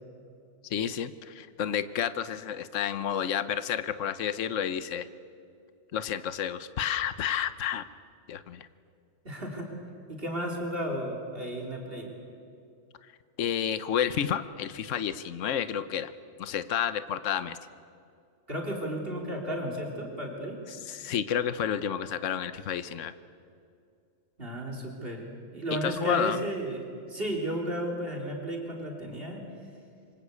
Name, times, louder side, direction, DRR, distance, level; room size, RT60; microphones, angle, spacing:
voice 1, 0.7-5.1 5.9-7.8 8.3-8.7 13.4-16.1 16.4-17.6 20.9-23.1 25.8-26.4, left 9 dB, 70° left, 13 dB, 1.2 m, -30 dB
voice 2, 9.2-9.7 10.1-12.1 18.5-20.6 24.4-29.4, right 1 dB, 45° right, 0 dB, 3.9 m, -33 dB
27.0 x 24.5 x 8.4 m, 2.5 s
omnidirectional pair, 1.4 m